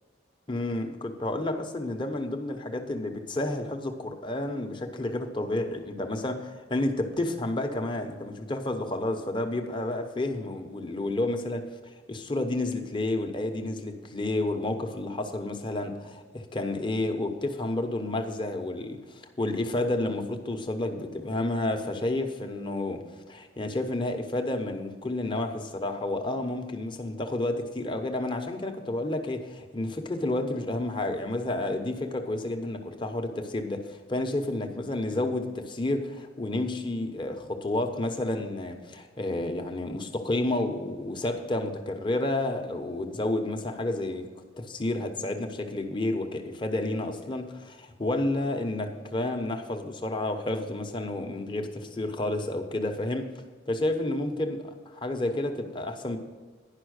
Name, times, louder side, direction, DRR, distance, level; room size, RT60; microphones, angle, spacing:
voice 1, 0.5-44.3 44.6-53.3 53.7-54.6 55.0-56.2, left 2 dB, 25° left, 5 dB, 0.9 m, -30 dB
10.5 x 5.7 x 6.4 m, 1.5 s
head